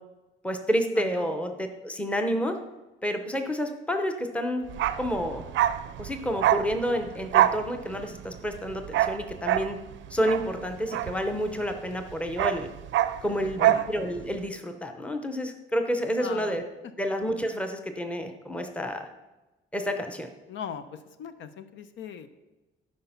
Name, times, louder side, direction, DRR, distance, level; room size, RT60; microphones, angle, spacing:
voice 1, 0.4-2.5 3.0-4.6 5.0-5.4 6.0-9.8 10.1-12.7 13.2-16.6 17.0-19.1 19.7-20.3, equal, 5° left, 6 dB, 0.8 m, -29 dB
Bark, 4.7-11.7 12.0-13.9 14.2-14.3, right 12 dB, 75° right, 0.5 m, -26 dB
voice 2, 16.2-16.6 20.5-22.3, left 7 dB, 75° left, 11 dB, 0.7 m, -39 dB
12.0 x 5.1 x 5.7 m, 1.1 s
cardioid pair, 170°, 20 cm